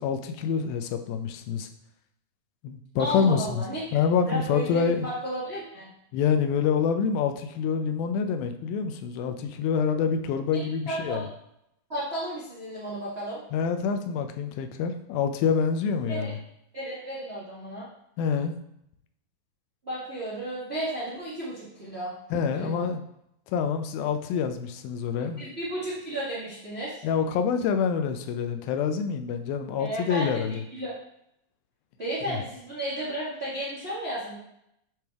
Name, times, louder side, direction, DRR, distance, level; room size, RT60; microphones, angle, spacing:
voice 1, 0.0-1.7 2.6-3.6 3.9-5.1 6.1-11.2 13.5-16.4 18.2-18.5 22.3-23.0 23.5-25.4 27.0-30.6 32.3-32.4, left 6 dB, 85° left, 7 dB, 2.4 m, -26 dB
voice 2, 3.0-4.0 4.3-5.9 10.5-11.2 11.9-13.4 16.1-16.3 16.7-17.9 19.8-22.1 22.5-22.9 25.2-26.9 29.8-30.3 30.7-30.9 32.0-34.4, right 1 dB, 45° right, -8 dB, 0.7 m, -33 dB
9.2 x 3.4 x 3.4 m, 0.76 s
omnidirectional pair, 4.1 m